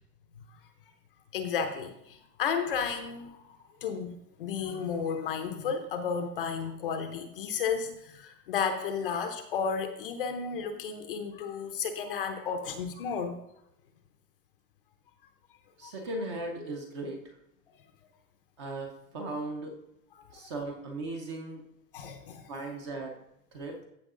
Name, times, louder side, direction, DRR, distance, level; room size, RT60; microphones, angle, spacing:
voice 1, 1.3-3.4 3.8-13.4 15.8-15.9 21.9-22.4, left 6 dB, 35° left, 7 dB, 0.7 m, -33 dB
voice 2, 15.8-17.4 18.6-19.8 20.3-21.6 22.5-23.2 23.5-23.8, right 2 dB, 20° right, 2 dB, 0.7 m, -37 dB
15.0 x 5.8 x 3.7 m, 0.78 s
supercardioid pair, 175°, 49 cm